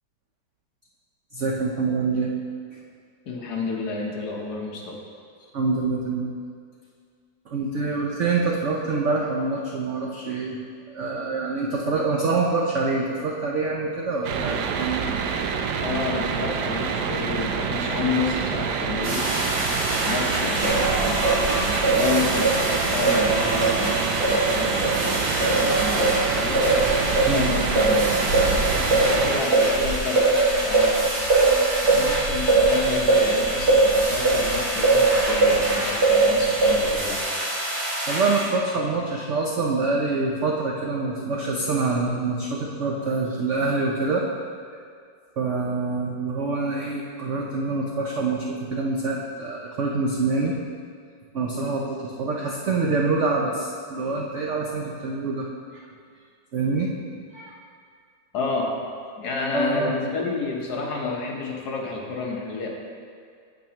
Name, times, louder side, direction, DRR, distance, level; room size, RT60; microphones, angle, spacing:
voice 1, 1.3-2.3 5.5-6.3 7.5-10.6 10.9-15.0 27.2-27.5 38.1-44.3 45.4-50.6 51.3-55.5 56.5-56.9 57.3-57.6 59.5-59.9, right 3 dB, 90° right, -1 dB, 0.6 m, -25 dB
voice 2, 3.3-4.9 15.8-19.7 20.0-26.7 27.1-31.1 31.9-37.2 58.3-58.8 59.2-62.7, left 4 dB, 60° left, -1 dB, 1.4 m, -30 dB
sound 1, 14.2-29.4, right 6 dB, 70° right, 1.0 m, -27 dB
sound 2, 19.0-38.4, equal, 35° right, 2.0 m, -29 dB
Singing, 20.6-25.0 25.4-35.7 36.0-37.0, right 3 dB, 55° right, 1.6 m, -21 dB
9.1 x 7.8 x 2.9 m, 2.2 s
omnidirectional pair, 2.1 m